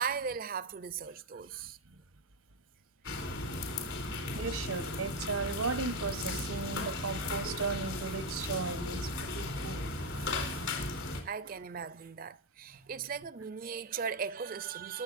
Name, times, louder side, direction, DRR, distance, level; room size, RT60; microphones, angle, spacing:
voice 1, 0.0-1.8 6.2-6.4 6.9-7.0 8.7-8.8 10.2-10.6 11.2-15.0, right 6 dB, 40° right, 0.4 m, -38 dB
sound 1, 3.0-11.2, left 2 dB, 75° left, 4.0 m, -36 dB
voice 2, 4.3-9.9, right 5 dB, 85° right, 1.0 m, -36 dB
22.5 x 8.1 x 2.5 m
head